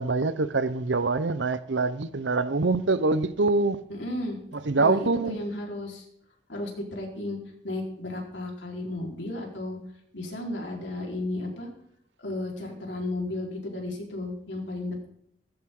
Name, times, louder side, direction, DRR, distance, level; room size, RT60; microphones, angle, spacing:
voice 1, 0.0-3.8 4.7-5.4, right 3 dB, 85° right, 0.8 m, -25 dB
voice 2, 3.9-4.4 4.8-6.0 6.5-7.4 7.6-9.8 10.1-11.7 12.2-15.1, left 2 dB, 85° left, 4.3 m, -33 dB
17.5 x 14.5 x 3.8 m
head